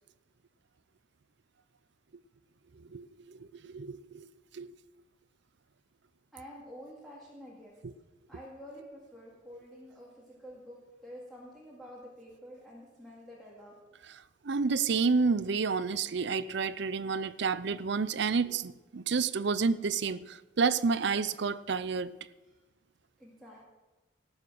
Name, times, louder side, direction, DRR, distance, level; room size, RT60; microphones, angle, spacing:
voice 1, 2.9-3.4 3.6-4.3 4.5-4.7 7.8-7.9 14.4-22.1, right 5 dB, 60° right, 0.5 m, -30 dB
voice 2, 6.3-7.8 8.3-13.8 22.4-22.6 23.2-23.7, equal, ahead, 2.3 m, -49 dB
18.0 x 7.3 x 6.3 m
head